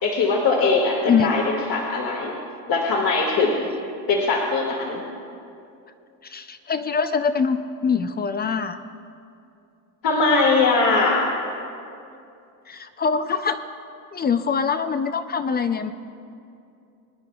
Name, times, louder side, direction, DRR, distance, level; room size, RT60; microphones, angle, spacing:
voice 1, 0.0-2.4 2.7-3.7 4.1-5.0 10.0-11.2, left 3 dB, 50° left, -2 dB, 1.9 m, -21 dB
voice 2, 6.2-8.8 12.7-13.6 14.1-15.9, left 6 dB, 25° left, 10 dB, 0.4 m, -23 dB
23.5 x 9.9 x 2.3 m, 2.6 s
supercardioid pair, 90°, 45 cm